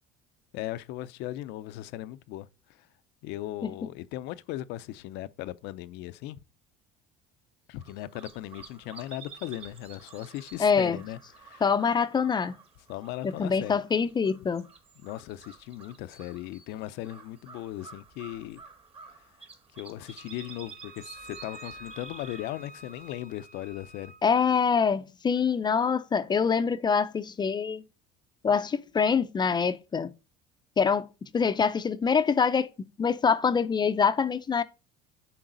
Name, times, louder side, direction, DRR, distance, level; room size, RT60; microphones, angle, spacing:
voice 1, 0.5-2.5 2.8-2.9 3.2-6.4 7.7-11.6 12.9-13.8 15.0-18.6 19.8-24.1, left 14 dB, 70° left, 0.6 m, -38 dB
sound 1, 7.8-23.9, right 5 dB, 30° right, 1.5 m, -51 dB
voice 2, 10.6-11.0 11.6-12.5 13.2-14.7 24.2-27.8 28.4-30.1 30.8-31.1 31.3-32.7 33.0-34.6, left 6 dB, 25° left, 0.5 m, -25 dB
Wind instrument woodwind instrument, 20.2-24.2, right 1 dB, 55° right, 0.9 m, -48 dB
10.0 x 3.9 x 3.9 m
supercardioid pair, 110°, 18 cm